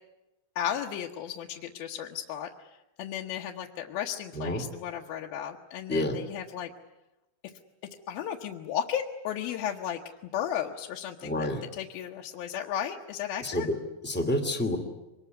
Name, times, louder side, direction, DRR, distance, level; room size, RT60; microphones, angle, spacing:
voice 1, 0.6-2.7 3.0-6.7 8.1-10.0 10.3-11.5 11.7-13.7, left 10 dB, 70° left, 0 dB, 2.8 m, -34 dB
voice 2, 4.3-4.6 5.9-6.2 11.2-11.6 13.4-14.8, left 1 dB, 5° left, 4 dB, 1.6 m, -29 dB
24.5 x 21.0 x 9.4 m, 1.0 s
omnidirectional pair, 4.5 m